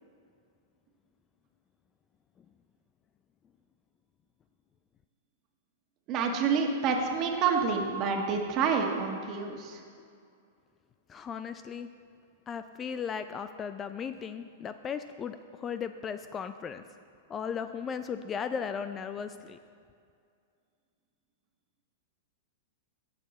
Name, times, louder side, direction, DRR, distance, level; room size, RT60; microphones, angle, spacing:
voice 1, 6.1-9.8, right 5 dB, 40° right, 2 dB, 1.5 m, -28 dB
voice 2, 11.1-11.9 12.5-16.8 17.3-19.6, left 7 dB, 25° left, 10 dB, 0.4 m, -36 dB
16.5 x 6.6 x 4.2 m, 2.3 s
hypercardioid pair, 130°, 0 cm